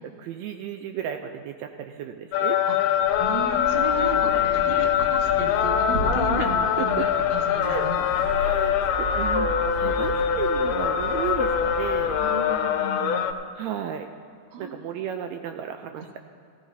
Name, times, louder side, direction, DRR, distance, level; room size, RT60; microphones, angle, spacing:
voice 1, 0.0-2.6 6.4-6.5 6.8-7.1 7.6-7.9 8.3-12.2 13.5-14.1 14.6-16.2, right 9 dB, 90° right, 6 dB, 1.5 m, -33 dB
sound 1, 2.3-13.3, left 8 dB, 80° left, 2.0 m, -23 dB
sound 2, 2.8-12.4, right 1 dB, 75° right, 3.0 m, -35 dB
voice 2, 3.2-8.0 12.2-13.3 14.5-14.7, right 3 dB, 55° right, 1 dB, 1.3 m, -34 dB
17.0 x 15.0 x 2.7 m, 2.6 s
omnidirectional pair, 3.7 m